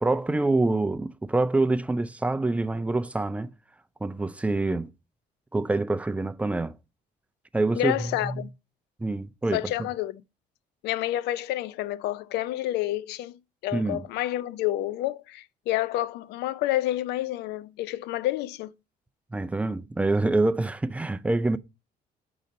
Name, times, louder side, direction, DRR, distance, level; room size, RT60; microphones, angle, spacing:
voice 1, 0.0-3.5 4.0-4.9 5.5-6.8 7.5-8.4 9.0-9.6 13.7-14.1 19.3-21.6, right 2 dB, 10° right, 0.3 m, -26 dB
voice 2, 7.7-8.5 9.5-10.1 10.8-18.7, left 14 dB, 85° left, 0.5 m, -29 dB
5.1 x 4.0 x 5.2 m
cardioid pair, 110°, 17 cm